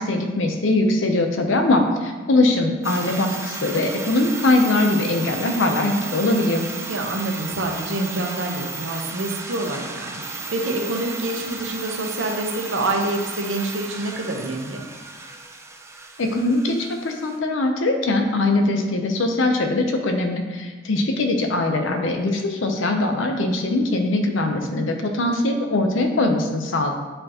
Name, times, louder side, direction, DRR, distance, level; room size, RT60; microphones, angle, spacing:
voice 1, 0.0-6.6 16.2-26.9, left 2 dB, 90° left, 4 dB, 0.7 m, -21 dB
sound 1, 2.8-17.4, right 3 dB, 15° right, 0.4 m, -34 dB
voice 2, 6.9-14.8, right 2 dB, 85° right, 2 dB, 0.8 m, -27 dB
7.6 x 4.4 x 2.9 m, 1.3 s
head